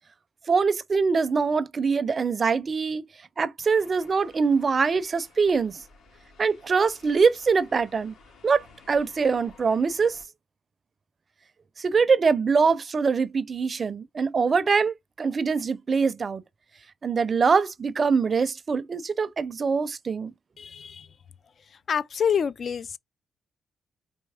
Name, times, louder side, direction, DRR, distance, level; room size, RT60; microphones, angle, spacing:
voice 1, 0.5-3.0 3.4-5.8 6.4-8.1 8.4-10.2 11.8-16.4 17.0-20.3, right 5 dB, 40° right, 0.5 m, -23 dB
sound 1, 3.6-10.3, left 4 dB, 85° left, 2.2 m, -54 dB
voice 2, 20.6-21.1 21.7-23.0, left 7 dB, 50° left, 0.3 m, -27 dB
4.3 x 3.0 x 3.4 m
cardioid pair, 90°, 0 cm